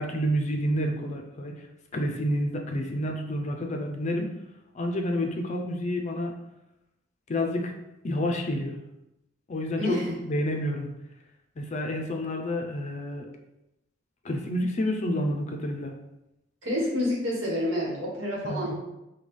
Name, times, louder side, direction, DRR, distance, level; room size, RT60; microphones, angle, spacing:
voice 1, 0.0-1.6 1.9-4.3 4.7-6.3 7.3-7.7 8.0-8.8 9.5-10.0 10.2-10.9 11.6-13.3 14.2-15.9 18.4-18.7, equal, 35° left, 3 dB, 0.5 m, -29 dB
voice 2, 9.8-10.2 16.6-18.7, left 1 dB, 75° right, -3 dB, 1.4 m, -28 dB
5.3 x 2.3 x 3.2 m, 0.90 s
head